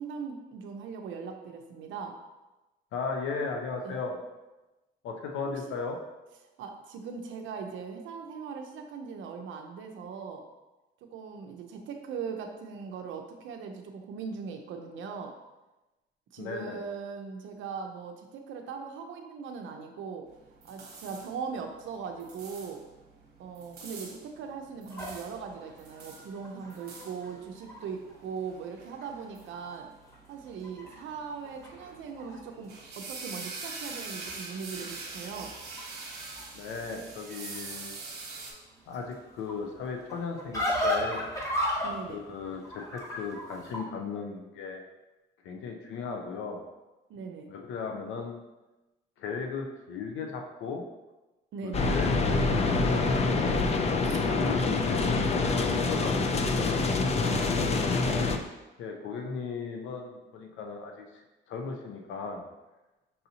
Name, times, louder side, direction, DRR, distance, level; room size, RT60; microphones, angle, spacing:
voice 1, 0.0-2.2 3.8-4.0 5.4-5.5 6.6-10.4 11.1-15.3 16.3-20.2 20.7-22.8 23.4-29.9 30.3-35.5 41.8-42.2 47.1-47.5 51.5-51.9 54.0-54.2 57.2-57.9, right 6 dB, 75° right, 3 dB, 0.5 m, -39 dB
voice 2, 2.9-4.2 5.0-6.0 16.4-16.8 36.5-38.0 38.9-41.3 42.1-44.8 45.4-46.6 47.5-48.4 49.2-50.8 51.6-53.6 54.2-56.9 58.8-62.5, left 4 dB, 85° left, 2 dB, 0.5 m, -37 dB
sound 1, 20.3-38.5, right 3 dB, 55° right, 1.0 m, -45 dB
sound 2, 24.9-28.1 28.6-28.7 29.0-29.8 30.1-32.4 32.6-33.2 33.8-43.8, left 1 dB, 15° left, 1.1 m, -36 dB
sound 3, 51.7-58.4, left 3 dB, 35° left, 0.4 m, -26 dB
5.4 x 2.7 x 2.8 m, 1.1 s
cardioid pair, 90°, 20 cm